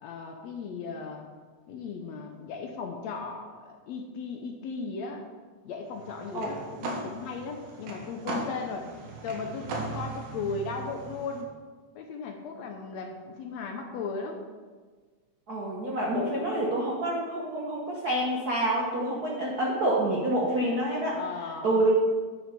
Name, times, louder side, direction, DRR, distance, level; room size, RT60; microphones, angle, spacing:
voice 1, 0.0-1.3 1.7-5.3 5.7-8.9 9.2-11.5 12.0-14.4 21.1-21.9, left 4 dB, 70° left, 3 dB, 1.7 m, -36 dB
sound 1, 5.9-11.4, right 3 dB, 90° right, 2.9 m, -38 dB
voice 2, 15.5-21.2 21.6-21.9, right 1 dB, 60° right, -3 dB, 0.9 m, -27 dB
10.5 x 6.1 x 5.1 m, 1.4 s
omnidirectional pair, 3.6 m